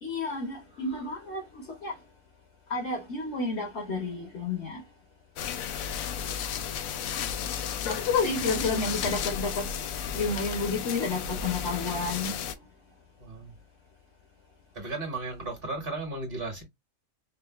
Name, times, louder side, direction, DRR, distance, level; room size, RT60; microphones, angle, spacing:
voice 1, 0.0-1.4 1.8-1.9 2.7-4.8 7.9-9.7 10.1-12.4, left 3 dB, 60° left, 1.2 m, -30 dB
sound 1, 5.4-12.5, left 8 dB, 85° left, 1.0 m, -33 dB
voice 2, 13.2-13.5 14.7-16.6, right 2 dB, 40° right, 1.8 m, -35 dB
5.0 x 2.5 x 2.4 m
omnidirectional pair, 1.4 m